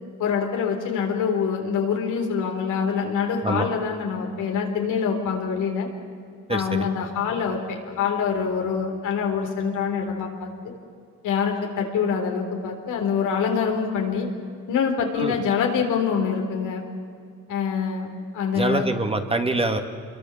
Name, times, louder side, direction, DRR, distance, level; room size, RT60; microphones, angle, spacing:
voice 1, 0.2-5.9 6.5-10.5 11.2-14.3 14.7-16.8 17.5-18.1 18.3-18.9, left 6 dB, 85° left, 2 dB, 4.0 m, -25 dB
voice 2, 6.5-6.9 15.1-15.3 18.5-19.8, right 2 dB, 20° right, 6 dB, 2.2 m, -24 dB
26.5 x 22.5 x 7.4 m, 2.3 s
cardioid pair, 90°, 30 cm